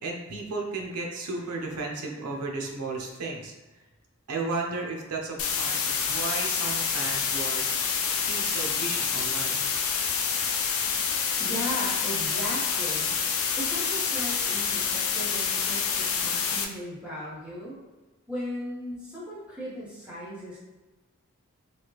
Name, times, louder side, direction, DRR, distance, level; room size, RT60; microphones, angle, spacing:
voice 1, 0.0-3.6 4.3-7.7 8.2-9.7 10.6-11.4, right 3 dB, 85° right, 0 dB, 0.6 m, -34 dB
sound 1, 5.4-16.6, left 6 dB, 70° left, 0.4 m, -27 dB
voice 2, 11.4-13.1 13.6-17.8 18.3-20.6, equal, 5° right, -9 dB, 1.0 m, -37 dB
3.2 x 2.4 x 2.9 m, 1.1 s
head